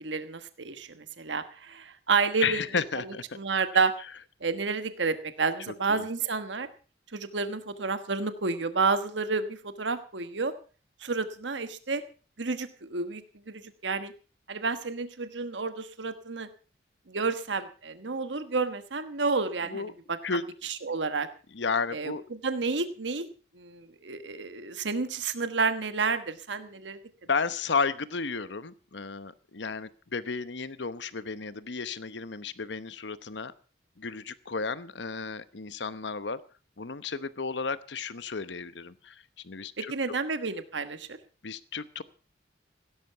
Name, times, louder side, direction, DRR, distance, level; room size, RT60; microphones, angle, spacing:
voice 1, 0.0-2.6 2.9-3.9 4.4-6.7 7.1-10.5 11.0-12.0 12.4-13.2 13.5-14.1 14.5-16.5 17.1-20.2 20.6-21.3 21.9-23.3 23.5-27.0 39.8-41.2, right 4 dB, 80° right, 11 dB, 1.3 m, -30 dB
voice 2, 2.4-3.2 5.9-6.0 19.7-19.9 20.2-20.4 21.5-22.2 27.3-33.5 34.0-36.4 36.8-39.1 39.4-39.9 41.4-42.0, left 5 dB, 75° left, 15 dB, 0.9 m, -33 dB
16.5 x 13.0 x 5.7 m, 0.38 s
head